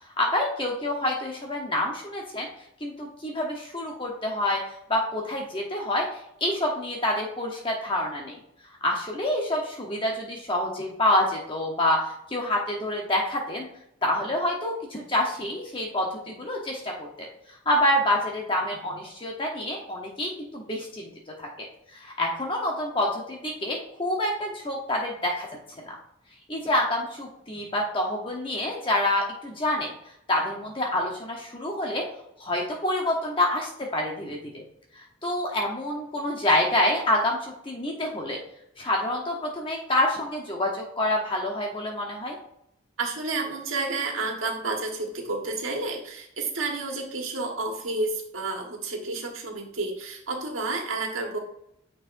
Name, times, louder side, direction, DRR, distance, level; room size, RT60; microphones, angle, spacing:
voice 1, 0.2-2.5 2.8-4.6 4.9-6.1 6.4-8.4 8.8-13.7 14.0-17.3 17.7-21.1 21.4-21.5 21.9-25.5 25.9-26.0 26.5-29.9 30.3-32.0 32.4-34.6 35.0-38.4 38.8-42.3, left 1 dB, 25° left, -1 dB, 0.9 m, -27 dB
voice 2, 43.0-51.4, right 3 dB, 85° right, 1 dB, 1.5 m, -30 dB
9.2 x 4.7 x 2.6 m, 0.77 s
head